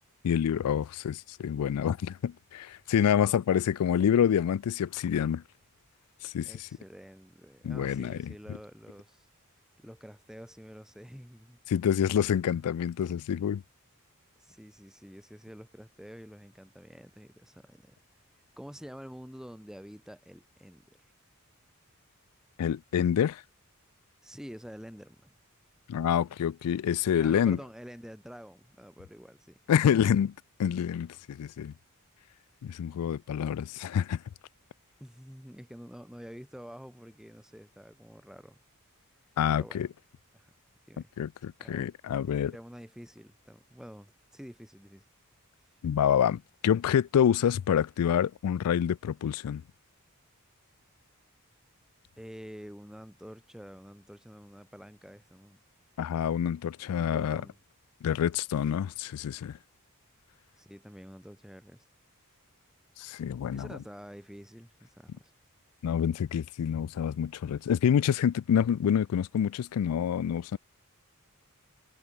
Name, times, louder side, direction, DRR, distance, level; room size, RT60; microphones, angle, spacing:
voice 1, 0.2-5.4 6.2-6.7 7.6-8.3 11.7-13.6 22.6-23.4 25.9-27.6 29.7-30.3 30.6-31.7 32.6-34.2 39.4-39.9 41.2-42.5 45.8-49.6 56.0-57.4 58.0-59.6 63.0-63.7 65.8-70.6, left 8 dB, 80° left, 0.3 m, -27 dB
voice 2, 6.4-9.3 9.8-11.6 14.4-18.0 18.3-21.1 24.2-25.4 27.2-30.0 35.0-38.6 39.5-39.9 40.3-40.5 40.9-41.1 41.6-41.9 42.4-45.1 52.2-55.6 56.9-57.6 60.5-61.8 63.5-65.3, equal, ahead, 2.5 m, -48 dB
head